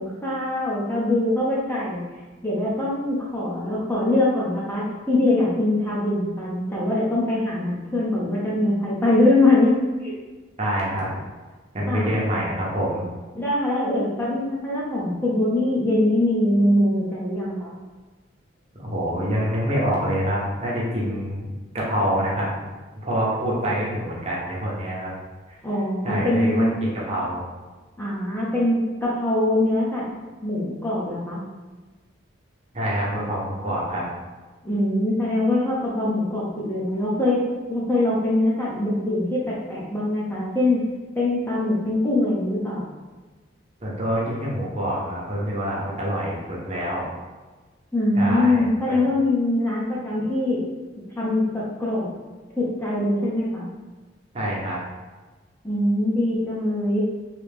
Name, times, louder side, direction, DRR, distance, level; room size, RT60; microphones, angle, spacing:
voice 1, 0.0-2.0 2.4-9.7 10.0-10.1 11.9-12.1 13.3-17.7 25.6-26.9 28.0-30.0 30.4-31.4 34.6-37.4 37.7-40.8 41.1-42.9 47.9-50.6 51.2-52.1 52.6-53.7 55.6-57.0, left 1 dB, 10° left, -6 dB, 0.7 m, -23 dB
voice 2, 10.6-11.1 11.7-13.0 18.8-21.5 21.7-22.6 23.0-25.1 26.0-27.4 32.7-34.0 43.8-47.1 48.2-49.1 54.3-54.8, equal, 35° right, -5 dB, 0.9 m, -26 dB
3.3 x 2.9 x 3.4 m, 1.3 s
head